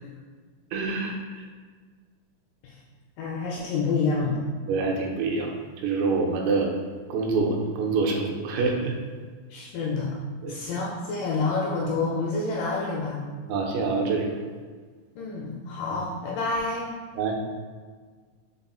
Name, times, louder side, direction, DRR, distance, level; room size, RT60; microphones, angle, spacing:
voice 1, 0.7-1.4 4.7-5.5 5.8-6.7 7.1-8.9 10.4-10.6 13.5-14.4 17.2-17.3, right 4 dB, 80° right, 1 dB, 2.2 m, -26 dB
voice 2, 3.2-4.4 9.5-10.1 10.5-13.2 15.2-16.9, left 3 dB, 80° left, -3 dB, 1.9 m, -28 dB
5.3 x 4.1 x 2.3 m, 1.5 s
omnidirectional pair, 4.3 m